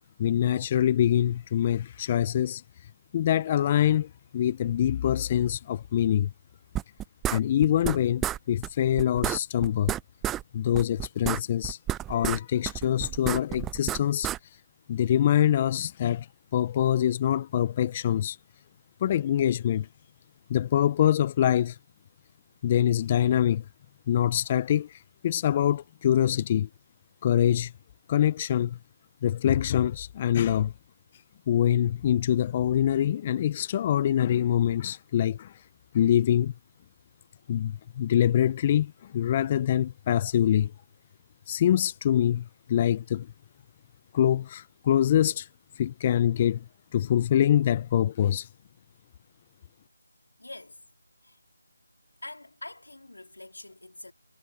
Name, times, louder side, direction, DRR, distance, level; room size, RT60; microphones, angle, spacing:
voice 1, 0.2-2.6 3.1-6.3 7.3-9.9 10.5-11.8 12.1-14.3 14.9-16.3 16.5-18.4 19.0-19.9 20.5-21.8 22.6-23.6 24.1-26.7 27.2-27.7 28.1-28.8 29.2-30.7 31.5-35.5 35.9-36.5 37.5-40.7 41.5-43.3 44.1-45.5 45.8-46.6 46.9-48.5, left 10 dB, 25° left, 0.8 m, -24 dB
sound 1, 6.7-8.0 8.2-8.4 8.6-8.7 9.0-10.4 10.7-12.4 12.6-14.4, right 12 dB, 10° right, 0.5 m, -30 dB
voice 2, 50.4-50.8 51.2-51.4 52.2-54.1, left 2 dB, 80° left, 3.3 m, -44 dB
figure-of-eight pair, 160°, 0 cm